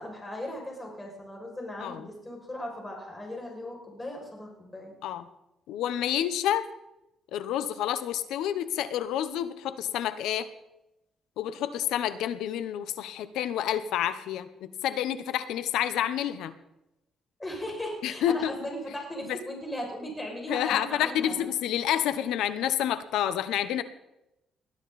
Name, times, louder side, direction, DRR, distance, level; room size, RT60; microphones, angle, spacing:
voice 1, 0.0-4.9 17.4-21.5, left 1 dB, 15° left, 0 dB, 6.5 m, -38 dB
voice 2, 5.7-6.7 7.3-10.5 11.4-16.5 18.0-18.5 19.3-19.4 20.5-23.8, left 11 dB, 90° left, 13 dB, 0.9 m, -29 dB
21.0 x 12.0 x 4.2 m, 0.89 s
cardioid pair, 90°, 0 cm